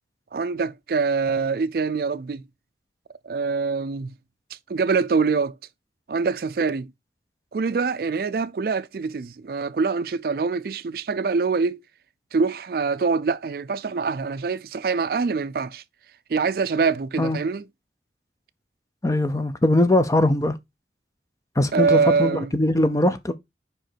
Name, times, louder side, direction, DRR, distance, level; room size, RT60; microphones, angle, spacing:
voice 1, 0.3-2.4 3.2-4.1 4.7-5.6 6.1-6.9 7.5-11.8 12.3-15.8 16.3-17.6 21.7-22.5, right 4 dB, 55° right, 0.4 m, -24 dB
voice 2, 19.0-20.6 21.6-23.3, left 1 dB, 20° left, 0.6 m, -21 dB
5.1 x 5.0 x 4.4 m
head